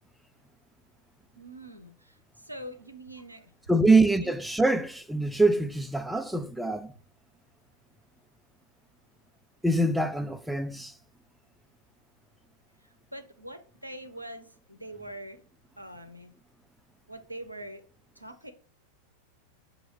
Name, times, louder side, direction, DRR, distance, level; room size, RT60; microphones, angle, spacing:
voice 1, 1.4-3.5 4.2-4.3 13.1-15.4 15.8-16.3 17.1-17.8 18.2-18.5, right 1 dB, 85° right, 0.5 m, -43 dB
voice 2, 3.7-6.9 9.6-10.9, right 2 dB, 5° right, 0.3 m, -24 dB
6.1 x 2.5 x 3.0 m
figure-of-eight pair, 90°, 0 cm